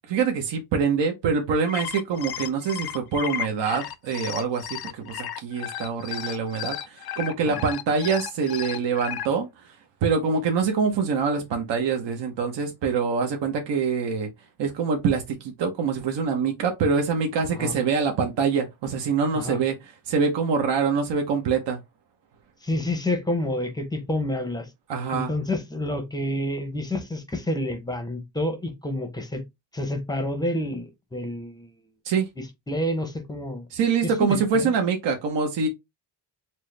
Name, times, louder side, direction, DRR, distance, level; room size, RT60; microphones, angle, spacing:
voice 1, 0.1-9.8 10.0-14.3 14.6-21.8 24.9-25.3 32.0-32.3 33.7-35.7, right 5 dB, 65° right, 0.9 m, -25 dB
sound 1, 1.5-9.3, left 10 dB, 55° left, 0.5 m, -34 dB
voice 2, 22.6-24.7 25.1-29.4 29.7-31.7 32.4-33.7 34.0-34.7, left 1 dB, 10° left, 0.6 m, -29 dB
4.4 x 2.1 x 3.2 m
cardioid pair, 155°, 46 cm